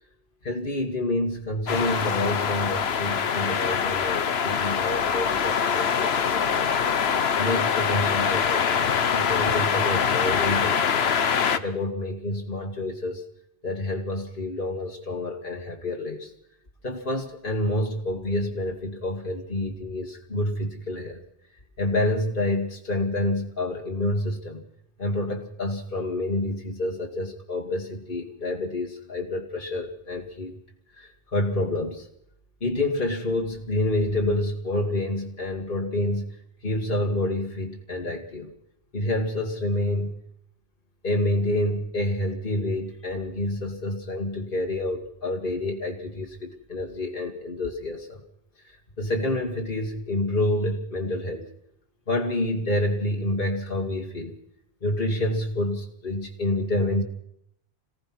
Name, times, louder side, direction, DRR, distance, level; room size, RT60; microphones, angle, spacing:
voice 1, 0.4-6.8 7.3-8.8 9.1-11.0 11.5-13.2 13.6-16.3 16.8-21.2 21.8-24.6 25.0-30.5 31.0-32.0 32.6-36.3 36.6-38.5 38.9-40.1 41.0-48.2 49.0-51.5 52.1-54.3 54.8-57.0, left 1 dB, 50° left, 0 dB, 2.5 m, -28 dB
sound 1, 1.7-11.6, left 7 dB, 70° left, 1.2 m, -24 dB
26.5 x 17.0 x 6.2 m, 0.75 s
omnidirectional pair, 1.1 m